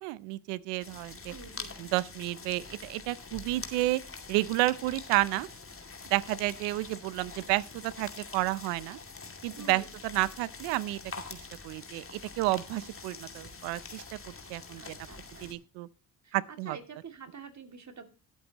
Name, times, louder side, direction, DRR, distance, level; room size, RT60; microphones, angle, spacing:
voice 1, 0.0-1.3 1.8-4.0 4.3-5.5 6.1-9.0 9.4-11.0 11.3-11.4 11.6-14.0 14.5-15.0 15.4-15.9 16.3-16.8, right 19 dB, 90° right, 0.7 m, -31 dB
sound 1, 0.8-15.6, left 4 dB, 30° left, 2.5 m, -45 dB
voice 2, 1.3-1.8 9.6-9.9 14.8-15.5 16.2-18.0, right 5 dB, 45° right, 2.5 m, -47 dB
18.5 x 8.2 x 2.9 m
supercardioid pair, 55°, 40 cm